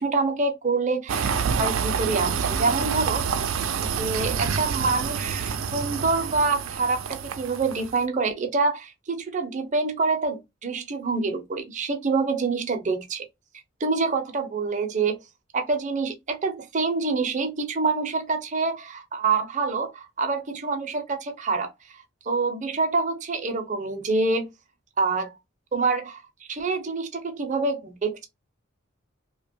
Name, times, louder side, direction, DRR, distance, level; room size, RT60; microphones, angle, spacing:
voice 1, 0.0-3.2 3.8-13.2 13.8-15.2 15.5-21.7 22.3-24.5 25.0-25.3 25.7-26.2 26.5-28.3, right 4 dB, 40° right, 0.6 m, -26 dB
sound 1, 1.1-8.0, right 6 dB, 85° right, 0.4 m, -27 dB
2.8 x 2.2 x 2.6 m
head